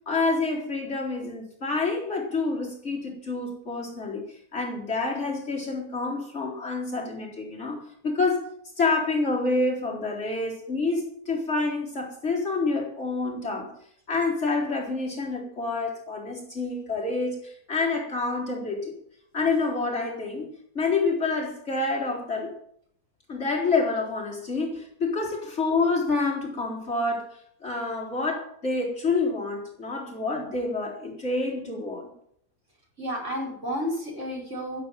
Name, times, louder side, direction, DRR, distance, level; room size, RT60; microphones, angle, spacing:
voice 1, 0.1-4.2 4.5-8.4 8.8-13.7 14.1-18.9 19.3-20.5 20.7-22.5 23.3-27.3 27.6-32.1, left 3 dB, 50° left, -3 dB, 4.5 m, -28 dB
voice 2, 33.0-34.8, equal, 55° right, -2 dB, 5.6 m, -31 dB
15.0 x 7.8 x 9.0 m, 0.68 s
omnidirectional pair, 1.5 m